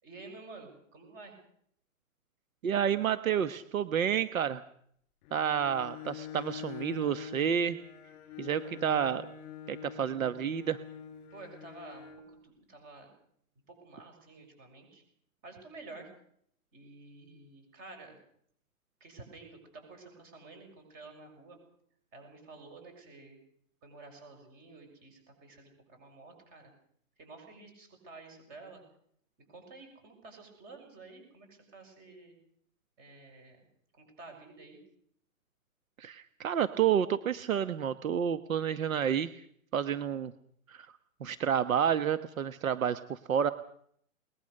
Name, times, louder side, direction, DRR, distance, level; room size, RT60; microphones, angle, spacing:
voice 1, 0.0-1.3 8.6-8.9 11.3-13.1 13.8-15.0 15.4-16.1 16.7-18.2 19.0-21.6 22.1-23.4 23.8-26.7 27.2-28.8 29.5-32.3 33.0-33.7 33.9-34.8, right 3 dB, 20° right, 4 dB, 6.6 m, -51 dB
voice 2, 2.6-4.6 5.3-7.8 8.4-9.2 9.7-10.8 36.0-39.3 39.7-40.3 40.7-40.9 41.2-43.5, right 8 dB, 70° right, 13 dB, 1.3 m, -30 dB
Bowed string instrument, 5.2-12.3, left 8 dB, 25° left, 3.3 m, -45 dB
22.5 x 20.5 x 6.6 m, 0.66 s
hypercardioid pair, 170°, 43 cm